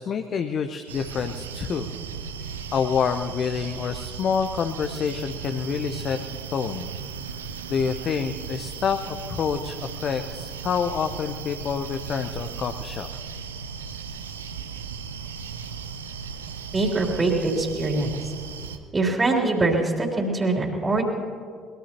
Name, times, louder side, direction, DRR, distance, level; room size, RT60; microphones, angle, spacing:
voice 1, 0.0-1.9 2.4-6.2 6.5-6.9 7.7-13.1, left 6 dB, 45° left, 7 dB, 0.8 m, -27 dB
sound 1, 0.9-18.8, right 6 dB, 80° right, 0.7 m, -36 dB
voice 2, 16.7-18.1 18.9-21.0, right 2 dB, 25° right, -1 dB, 3.3 m, -23 dB
22.5 x 20.5 x 3.0 m, 2.1 s
figure-of-eight pair, 55°, 0 cm